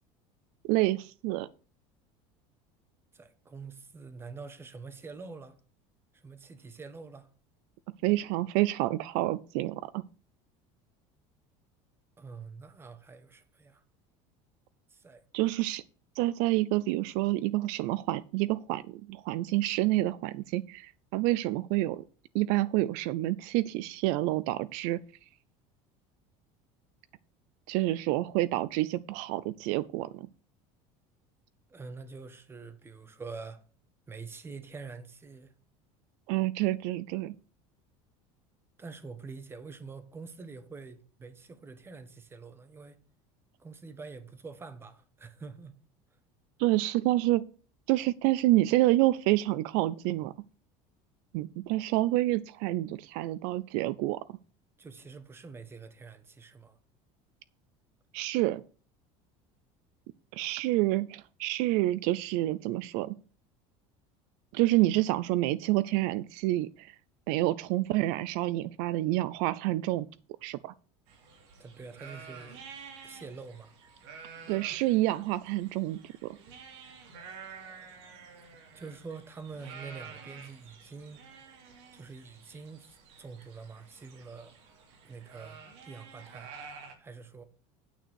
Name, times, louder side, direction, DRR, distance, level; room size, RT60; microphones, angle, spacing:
voice 1, 0.7-1.5 8.0-10.0 15.3-15.8 16.2-22.0 22.3-25.0 27.7-30.3 36.3-37.3 46.6-47.4 47.9-50.3 51.3-54.4 58.1-58.6 60.3-63.2 64.5-66.9 67.3-70.1 70.4-70.7 74.5-76.4, right 17 dB, 70° right, 0.5 m, -28 dB
voice 2, 3.1-5.5 6.1-7.3 12.2-13.8 14.9-15.2 31.7-33.6 34.1-35.5 38.8-43.0 43.6-45.7 54.8-56.8 71.6-72.6 73.0-73.7 78.7-81.2 81.9-84.5 85.0-86.5 87.0-87.4, right 4 dB, 15° right, 1.3 m, -46 dB
sound 1, 71.1-86.9, right 5 dB, 85° right, 3.0 m, -50 dB
9.1 x 6.5 x 6.3 m
cardioid pair, 150°, 14 cm